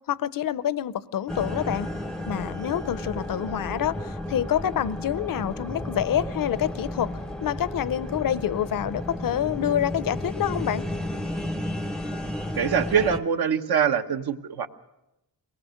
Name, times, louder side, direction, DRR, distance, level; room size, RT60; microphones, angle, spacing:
voice 1, 0.1-1.9 2.3-7.1 7.4-10.8, left 10 dB, 55° left, 0.7 m, -27 dB
sound 1, 1.3-13.2, left 1 dB, ahead, 0.7 m, -33 dB
voice 2, 12.6-14.7, right 7 dB, 70° right, 1.2 m, -24 dB
23.0 x 19.0 x 6.5 m
wide cardioid pair, 135°, 40 cm